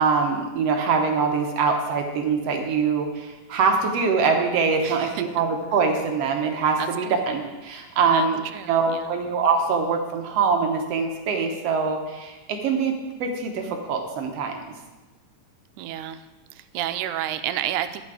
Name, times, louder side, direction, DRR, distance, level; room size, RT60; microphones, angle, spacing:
voice 1, 0.0-8.4 8.7-12.9 13.2-14.6, right 5 dB, 65° right, 3 dB, 1.7 m, -23 dB
voice 2, 4.8-5.2 6.8-7.2 8.1-8.3 8.5-9.1 15.8-16.3 16.5-18.0, right 12 dB, 85° right, 10 dB, 2.0 m, -31 dB
11.5 x 8.6 x 4.8 m, 1.2 s
omnidirectional pair, 3.6 m